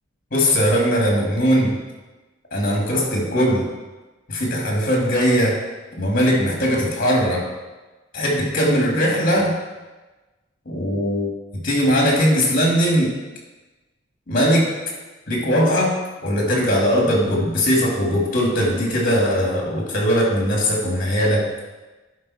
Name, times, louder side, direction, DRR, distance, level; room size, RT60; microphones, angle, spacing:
voice 1, 0.3-1.8 2.5-3.6 4.3-5.6 6.0-7.5 8.1-9.5 10.7-13.1 14.3-14.7 15.3-16.0 16.2-21.5, equal, 45° left, -1 dB, 2.4 m, -19 dB
11.0 x 5.4 x 4.3 m, 1.2 s
head